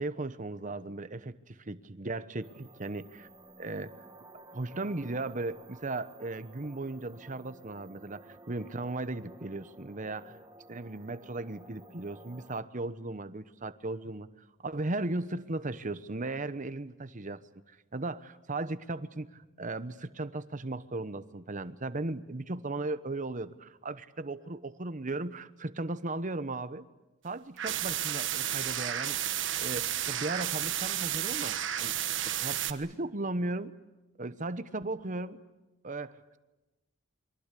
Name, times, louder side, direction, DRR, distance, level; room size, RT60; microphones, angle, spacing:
voice 1, 0.0-3.3 3.6-3.9 4.5-10.4 10.7-14.3 14.6-17.4 17.7-26.9 27.2-29.3 29.6-31.9 32.4-33.7 34.2-35.4 35.8-36.4, right 2 dB, 40° right, 13 dB, 1.0 m, -36 dB
sound 1, 2.4-12.6, right 2 dB, 20° right, 1.8 m, -54 dB
sound 2, 27.6-32.7, right 11 dB, 65° right, 1.4 m, -32 dB
29.0 x 23.0 x 8.4 m, 1.1 s
head